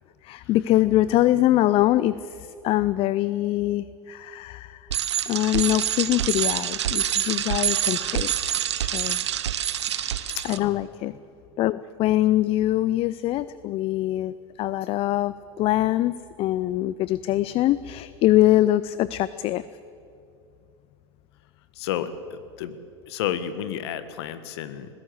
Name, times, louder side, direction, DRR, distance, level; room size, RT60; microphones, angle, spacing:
voice 1, 0.2-4.9 5.3-9.2 10.4-11.1 11.6-19.7, left 14 dB, 40° left, 17 dB, 0.5 m, -23 dB
Bicycle, 4.9-10.6, right 10 dB, 85° right, 0.9 m, -26 dB
voice 2, 9.9-10.8 21.7-22.8 23.1-24.9, left 10 dB, 70° left, 13 dB, 1.4 m, -32 dB
20.0 x 16.5 x 8.1 m, 2.6 s
hypercardioid pair, 95°, 14 cm